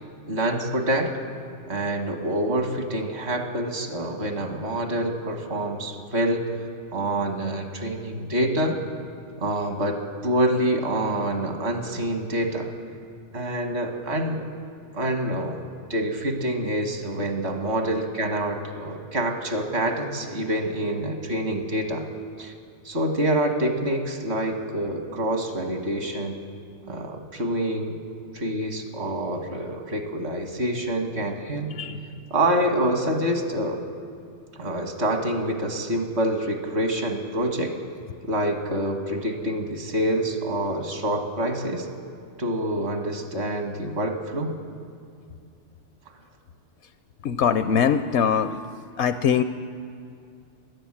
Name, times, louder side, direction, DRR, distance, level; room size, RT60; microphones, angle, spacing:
voice 1, 0.3-1.1 1.7-6.6 6.9-8.8 9.4-12.7 13.3-14.4 14.9-15.6 15.9-22.1 22.4-22.5 22.9-26.4 26.9-28.0 28.3-31.7 32.3-33.8 34.5-37.7 38.2-41.9 42.4-44.5, right 1 dB, 65° right, 4 dB, 1.7 m, -26 dB
voice 2, 47.2-48.6 49.0-49.4, left 7 dB, 75° left, 11 dB, 0.8 m, -22 dB
14.0 x 11.0 x 8.7 m, 2.4 s
omnidirectional pair, 1.2 m